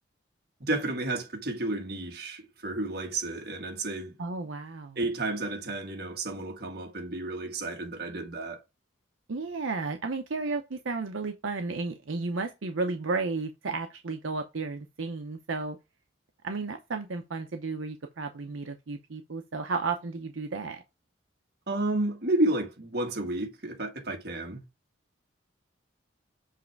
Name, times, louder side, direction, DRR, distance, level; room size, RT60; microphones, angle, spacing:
voice 1, 0.6-4.1 4.9-8.6 21.7-24.6, right 2 dB, 50° right, 1.6 m, -31 dB
voice 2, 4.2-5.0 9.3-15.8 16.4-20.8, right 3 dB, 85° right, 0.7 m, -33 dB
7.4 x 3.2 x 4.6 m
head